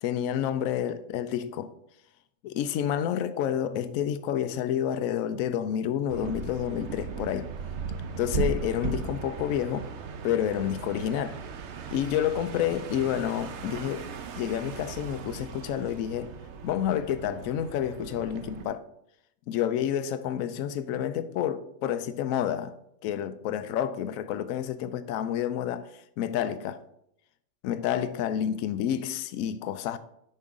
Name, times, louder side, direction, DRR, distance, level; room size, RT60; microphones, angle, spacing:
voice 1, 0.0-1.7 2.4-7.5 8.2-9.9 10.2-11.4 11.9-14.1 14.4-16.3 16.6-18.8 19.5-22.8 23.0-25.9 26.2-26.8 27.6-30.0, left 10 dB, 70° left, 0.9 m, -29 dB
sound 1, 6.1-18.6, right 5 dB, 60° right, 0.9 m, -37 dB
8.6 x 5.5 x 3.6 m
omnidirectional pair, 1.5 m